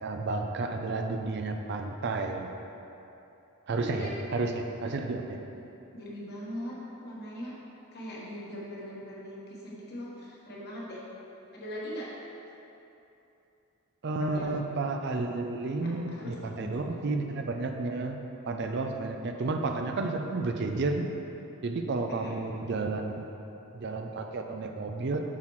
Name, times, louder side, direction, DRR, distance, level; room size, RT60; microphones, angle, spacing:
voice 1, 0.0-2.5 3.7-5.4 14.0-18.2 18.5-21.1 21.6-23.3 23.7-25.2, right 3 dB, 50° right, 4 dB, 0.4 m, -31 dB
voice 2, 3.8-4.1 5.9-7.6 7.9-11.0 11.5-12.1 14.1-14.5 15.7-15.9 16.2-17.0 22.2-22.3, equal, 45° left, -5 dB, 1.3 m, -40 dB
7.5 x 5.8 x 3.1 m, 2.9 s
head